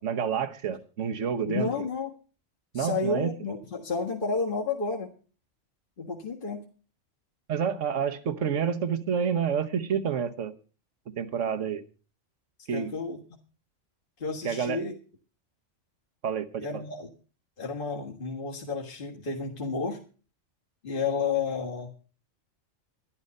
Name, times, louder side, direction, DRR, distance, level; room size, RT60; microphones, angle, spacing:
voice 1, 0.0-1.7 2.7-3.3 7.5-10.5 11.2-11.8 12.7-12.9 14.4-14.8 16.2-16.6, right 7 dB, 75° right, 1.3 m, -28 dB
voice 2, 1.4-2.1 2.7-5.1 6.0-6.6 12.7-13.2 14.2-15.0 16.6-17.1 17.6-20.0 20.8-21.9, left 4 dB, 45° left, 1.8 m, -31 dB
12.0 x 11.0 x 5.3 m
omnidirectional pair, 1.3 m